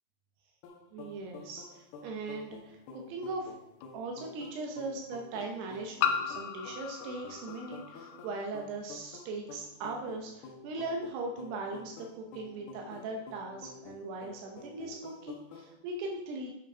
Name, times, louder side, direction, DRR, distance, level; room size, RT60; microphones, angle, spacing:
sound 1, 0.6-15.7, left 4 dB, 70° left, 2.9 m, -50 dB
voice 1, 0.9-3.5 3.9-16.5, right 3 dB, 80° right, 1 dB, 2.9 m, -39 dB
sound 2, 2.1-2.2 3.8-3.9 6.0-8.5, left 7 dB, 90° left, 2.8 m, -35 dB
9.1 x 5.4 x 5.4 m, 0.86 s
omnidirectional pair, 4.7 m